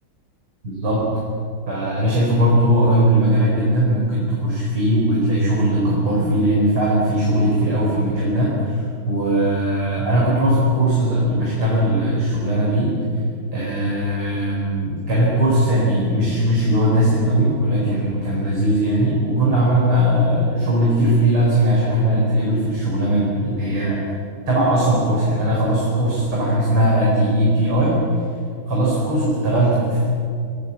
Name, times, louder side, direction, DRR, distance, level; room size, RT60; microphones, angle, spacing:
voice 1, 0.6-1.0 1.7-12.9 13.5-24.0 24.5-28.0 28.7-30.1, right 1 dB, 80° right, -6 dB, 6.0 m, -19 dB
29.5 x 18.0 x 7.4 m, 2.4 s
omnidirectional pair, 2.3 m